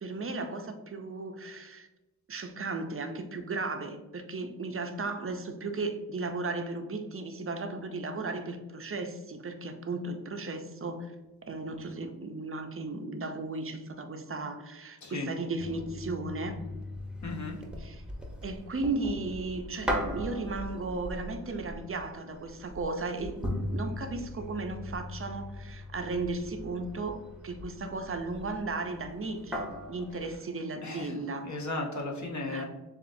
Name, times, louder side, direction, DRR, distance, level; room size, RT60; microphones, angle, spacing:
voice 1, 0.0-1.9 2.3-11.1 11.5-16.6 17.8-18.0 18.4-31.5 32.5-32.6, right 3 dB, 35° right, 6 dB, 0.5 m, -35 dB
sound 1, 15.6-30.4, left 1 dB, 5° right, 0.8 m, -39 dB
voice 2, 17.2-17.6 30.8-31.2 31.4-32.6, left 2 dB, 50° left, 1 dB, 0.9 m, -35 dB
6.9 x 2.4 x 2.6 m, 1.1 s
wide cardioid pair, 80°, 37 cm